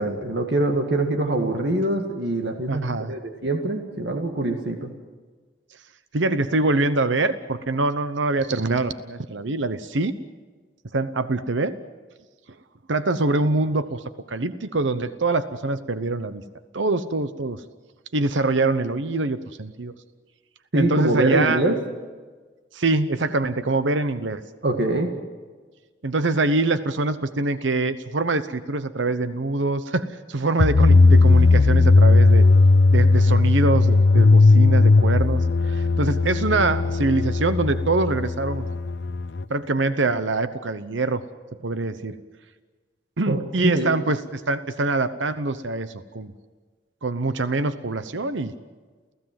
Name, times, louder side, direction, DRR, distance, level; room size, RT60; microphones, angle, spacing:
voice 1, 0.0-4.9 20.7-21.8 24.6-25.1 43.3-43.9, right 2 dB, 70° right, 4 dB, 2.0 m, -24 dB
voice 2, 2.7-3.1 6.1-10.1 10.9-11.7 12.9-16.4 16.7-17.6 18.1-19.9 20.7-21.6 22.7-24.4 26.0-32.5 32.9-38.7 39.5-41.2 41.6-42.2 43.2-46.3 47.0-48.5, right 2 dB, 90° right, 11 dB, 0.9 m, -24 dB
sound 1, 30.6-39.4, left 3 dB, 75° left, 0.6 m, -17 dB
29.5 x 15.5 x 7.7 m, 1.4 s
head